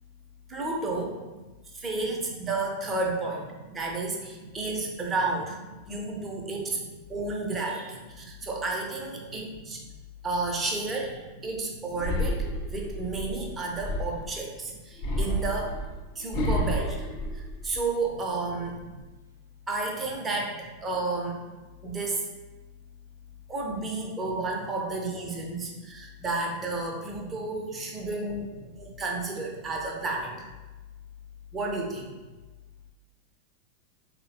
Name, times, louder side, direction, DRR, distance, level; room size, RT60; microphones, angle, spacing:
voice 1, 0.5-1.2 1.7-3.5 3.7-5.6 5.9-6.7 7.1-9.8 10.2-15.8 16.2-17.0 17.3-18.8 19.7-21.4 21.8-22.3 23.5-28.5 28.8-30.3 31.5-32.1, right 3 dB, 15° right, -1 dB, 0.6 m, -31 dB
voice 2, 3.9-4.5 4.8-5.0 5.7-7.0 7.5-7.9 8.5-8.6 9.1-9.7 11.8-12.5 13.4-13.8 14.1-14.2 14.7-14.8 18.6-19.1 20.5-20.6 24.6-24.7 25.4-25.7 26.4-26.6 26.9-27.9 28.4-28.7 32.0-32.2, right 2 dB, 70° right, 1 dB, 0.3 m, -48 dB
sound 1, 12.0-14.4 15.0-18.1 18.5-19.0, equal, 40° left, 0.5 m, -30 dB
3.8 x 2.1 x 2.7 m, 1.2 s
figure-of-eight pair, 90°, 0 cm